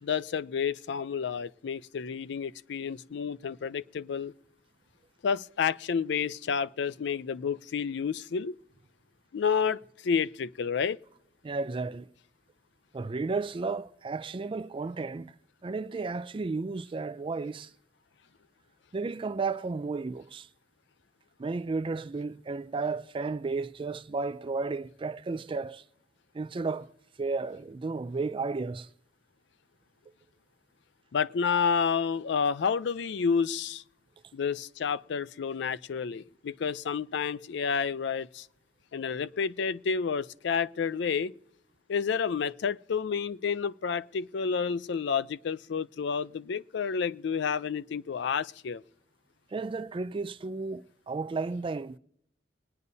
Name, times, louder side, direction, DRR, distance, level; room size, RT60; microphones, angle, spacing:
voice 1, 0.0-4.3 5.2-8.6 9.3-11.0 31.1-33.8 34.3-38.5 38.9-41.3 41.9-48.8, left 6 dB, 65° left, 0.4 m, -30 dB
voice 2, 11.4-12.1 12.9-15.3 15.6-17.7 18.9-20.5 21.4-25.8 26.3-26.9 27.2-28.9 49.5-52.0, right 4 dB, 30° right, 0.4 m, -33 dB
22.5 x 9.7 x 2.7 m
head